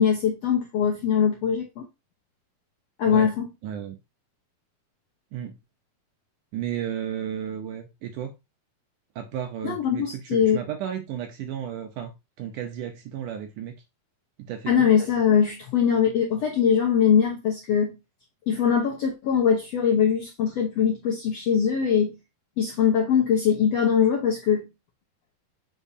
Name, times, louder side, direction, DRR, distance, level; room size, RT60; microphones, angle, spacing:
voice 1, 0.0-1.8 3.0-3.5 9.6-10.6 14.7-18.0 18.5-22.2 22.6-24.7, left 7 dB, 75° left, 1.5 m, -22 dB
voice 2, 3.6-4.0 5.3-5.6 6.5-8.3 9.2-12.1 12.4-13.8 14.4-14.9, right 9 dB, 75° right, 2.0 m, -33 dB
7.3 x 5.4 x 2.7 m
omnidirectional pair, 4.3 m